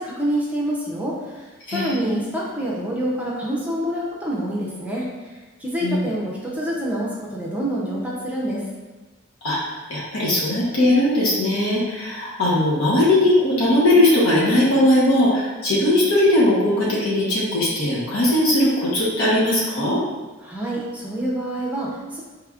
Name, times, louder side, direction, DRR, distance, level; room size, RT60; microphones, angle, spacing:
voice 1, 0.0-8.6 20.4-22.2, right 1 dB, 5° right, -4 dB, 0.5 m, -27 dB
voice 2, 1.7-2.2 5.8-6.0 9.4-9.6 9.9-20.0, left 1 dB, 85° left, -7 dB, 1.0 m, -19 dB
4.6 x 3.3 x 2.4 m, 1.2 s
head